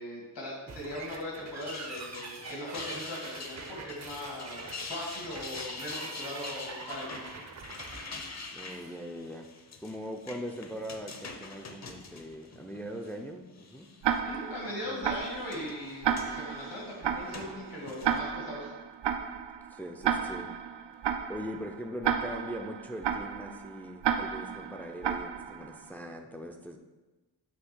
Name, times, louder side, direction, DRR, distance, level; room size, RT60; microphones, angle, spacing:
voice 1, 0.0-7.2 14.3-18.7, left 1 dB, 85° left, -3 dB, 2.4 m, -39 dB
sound 1, 0.7-9.0, right 4 dB, 40° right, 0.6 m, -45 dB
sound 2, 1.4-13.2 13.6-14.2 15.0-18.2, left 3 dB, 40° left, 0.7 m, -45 dB
voice 2, 8.5-9.5 9.8-13.9 14.9-15.1 19.7-20.5 20.9-21.0 21.3-26.8, equal, 5° left, 3 dB, 0.4 m, -41 dB
Tick-tock, 14.0-25.9, right 8 dB, 90° right, 0.5 m, -33 dB
7.8 x 3.2 x 6.1 m, 1.2 s
wide cardioid pair, 180°, 41 cm